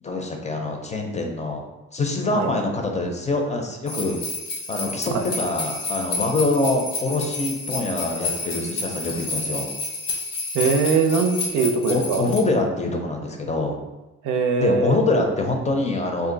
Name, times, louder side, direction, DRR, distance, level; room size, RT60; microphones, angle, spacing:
voice 1, 0.0-1.6 1.9-4.2 4.7-9.7 11.9-13.8 14.6-16.3, left 2 dB, 25° left, 2 dB, 0.5 m, -24 dB
sound 1, 3.9-12.4, left 3 dB, 90° left, 0.9 m, -30 dB
voice 2, 10.5-12.3 14.2-15.0, right 5 dB, 85° right, 4 dB, 0.5 m, -21 dB
2.6 x 2.3 x 3.9 m, 1.1 s
cardioid pair, 90°, 30 cm